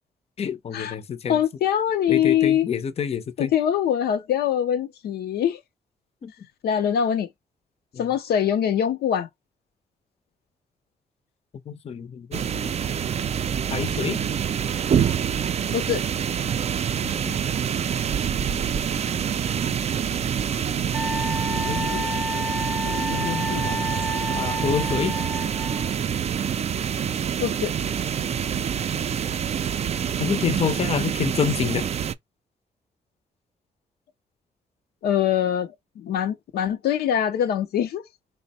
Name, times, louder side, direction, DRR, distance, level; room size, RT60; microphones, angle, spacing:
voice 1, 0.4-1.4 2.1-3.5 6.2-6.3 7.9-8.0 11.7-12.7 13.7-14.2 17.0-17.4 18.4-19.2 21.5-22.2 22.8-23.8 24.3-25.1 30.2-31.9, left 7 dB, 40° left, 0.5 m, -28 dB
voice 2, 1.3-2.7 3.4-5.6 6.6-7.3 8.0-9.3 15.7-16.0 27.4-27.7 35.0-38.0, left 9 dB, 90° left, 0.6 m, -23 dB
sound 1, 12.3-32.1, right 8 dB, 45° right, 0.4 m, -26 dB
Wind instrument woodwind instrument, 20.9-25.9, left 1 dB, 5° right, 0.6 m, -31 dB
3.3 x 2.1 x 4.0 m
cardioid pair, 95°, 16 cm